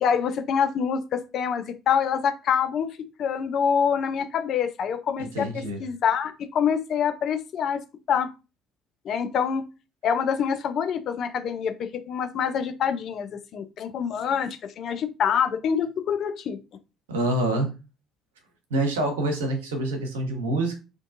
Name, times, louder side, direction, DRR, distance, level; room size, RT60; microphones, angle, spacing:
voice 1, 0.0-7.8 8.1-8.3 9.0-9.6 10.0-16.6, left 7 dB, 50° left, 9 dB, 0.3 m, -26 dB
voice 2, 5.2-5.8 17.1-17.7 18.7-20.8, right 1 dB, 70° right, 4 dB, 0.7 m, -26 dB
2.5 x 2.2 x 2.5 m, 0.30 s
figure-of-eight pair, 50°, 0 cm